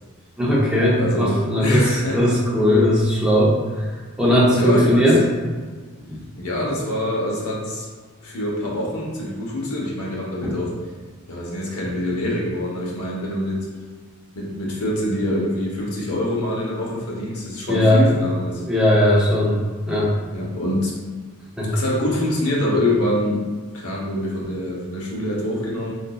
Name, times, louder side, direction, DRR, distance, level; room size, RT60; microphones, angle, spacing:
voice 1, 0.4-3.6 4.2-5.2 6.0-6.2 10.4-10.5 17.7-18.1 18.6-19.6 19.9-20.1 21.6-21.7, equal, 5° right, -7 dB, 0.5 m, -18 dB
voice 2, 1.0-2.2 4.6-5.2 6.4-7.9 8.2-10.7 11.3-13.7 14.4-18.6 20.3-21.0 21.6-23.4 23.7-25.9, left 1 dB, 85° left, -3 dB, 0.8 m, -25 dB
4.0 x 2.5 x 2.2 m, 1.5 s
head